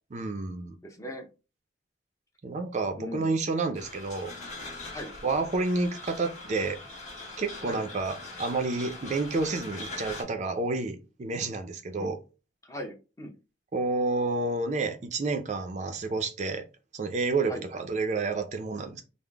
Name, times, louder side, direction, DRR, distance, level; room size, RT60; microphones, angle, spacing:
voice 1, 0.1-0.7 2.4-4.3 5.2-6.8 7.4-12.2 13.7-16.6 16.9-19.0, right 3 dB, 40° right, 7 dB, 0.4 m, -30 dB
voice 2, 0.8-1.3 3.0-3.2 4.9-5.1 7.6-7.8 12.0-12.1 12.6-13.3 17.5-17.6, equal, 20° left, 3 dB, 0.6 m, -38 dB
sound 1, 3.7-10.2, left 2 dB, 40° left, 1.3 m, -42 dB
3.6 x 2.0 x 3.4 m, 0.30 s
head